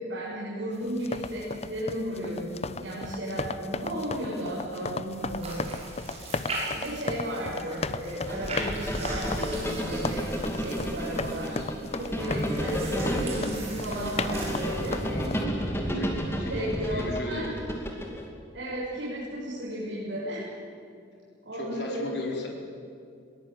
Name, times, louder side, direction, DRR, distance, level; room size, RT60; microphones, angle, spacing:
voice 1, 0.0-5.7 6.2-10.3 10.5-11.7 11.9-15.0 16.5-17.5 18.5-20.5 21.4-22.1, equal, 85° right, -8 dB, 6.9 m, -34 dB
sound 1, 0.9-15.4, left 3 dB, 35° left, 0.7 m, -36 dB
sound 2, 5.1-15.0, right 2 dB, 35° right, 6.1 m, -40 dB
sound 3, 8.3-18.3, equal, 15° left, 2.6 m, -32 dB
voice 2, 15.1-17.9 21.5-22.5, left 2 dB, 60° left, -1 dB, 4.2 m, -36 dB
21.5 x 19.0 x 9.2 m, 2.5 s
head